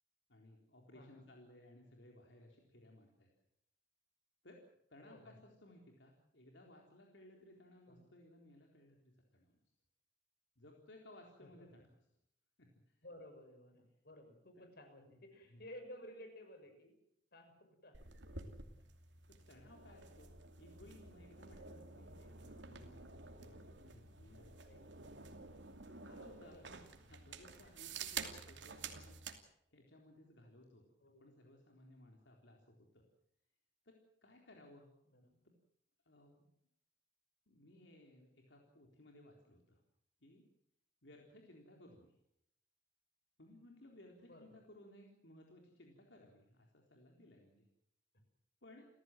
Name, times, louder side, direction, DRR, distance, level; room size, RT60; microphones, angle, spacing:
voice 1, 0.3-3.3 4.4-4.6 4.9-9.5 10.6-11.9 12.6-13.0 14.6-14.7 15.5-15.6 18.8-18.9 19.3-20.3 20.6-24.5 25.9-29.2 29.7-30.8 31.2-33.0 33.8-34.9 35.4-35.6 36.1-36.4 37.5-39.8 40.2-40.4 41.0-42.2 43.4-47.7 48.6-48.9, left 1 dB, 75° left, 1 dB, 3.9 m, -61 dB
voice 2, 0.9-1.3 5.0-5.3 7.9-8.0 11.4-11.9 13.0-16.9 17.3-17.6 17.8-18.6 24.6-25.3 26.5-26.7 27.4-27.7 31.0-31.2 35.1-35.4 44.3-44.5, equal, 60° left, 6 dB, 6.3 m, -56 dB
sound 1, 17.9-29.4, right 5 dB, 80° right, 2.7 m, -50 dB
29.5 x 15.0 x 7.7 m, 0.74 s
head